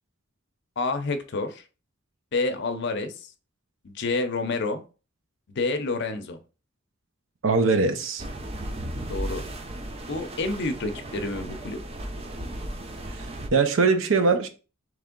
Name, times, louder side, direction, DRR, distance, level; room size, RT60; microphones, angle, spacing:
voice 1, 0.8-1.6 2.3-3.1 3.8-4.8 5.5-6.4 9.1-9.4 10.1-11.8, left 3 dB, 60° left, 0.6 m, -28 dB
voice 2, 7.4-8.2 13.1-14.5, right 4 dB, 70° right, 0.6 m, -22 dB
sound 1, 8.2-13.5, right 1 dB, 30° right, 0.5 m, -35 dB
3.4 x 3.2 x 3.7 m
head